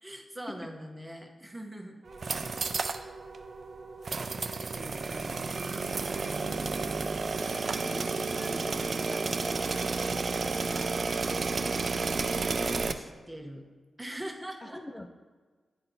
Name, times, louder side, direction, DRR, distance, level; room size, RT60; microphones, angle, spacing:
voice 1, 0.0-2.0 12.6-13.6 14.0-15.0, right 1 dB, 10° right, 3 dB, 0.8 m, -42 dB
sound 1, 2.0-11.3, right 4 dB, 80° right, 0.8 m, -47 dB
sound 2, 2.1-3.0 3.3-3.4 4.0-12.9, right 4 dB, 55° right, 0.3 m, -31 dB
voice 2, 4.8-5.5 7.6-11.0 14.6-15.1, left 1 dB, 20° left, 4 dB, 0.3 m, -45 dB
10.0 x 4.2 x 2.7 m, 1.4 s
cardioid pair, 80°, 0 cm